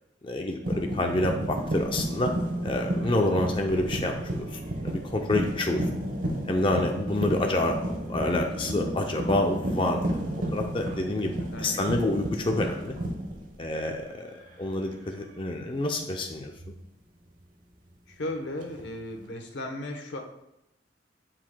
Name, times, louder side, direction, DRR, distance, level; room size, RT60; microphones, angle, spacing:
voice 1, 0.2-2.3 2.6-5.9 6.5-10.0 10.5-13.0 13.6-16.5, left 1 dB, 30° left, 3 dB, 0.5 m, -28 dB
sound 1, 0.6-14.1 14.4-14.8 16.6-16.8 18.6-19.2, right 1 dB, 50° right, 0.9 m, -32 dB
voice 2, 18.1-20.2, left 1 dB, 85° left, 4 dB, 1.0 m, -35 dB
7.6 x 5.7 x 2.2 m, 0.83 s
head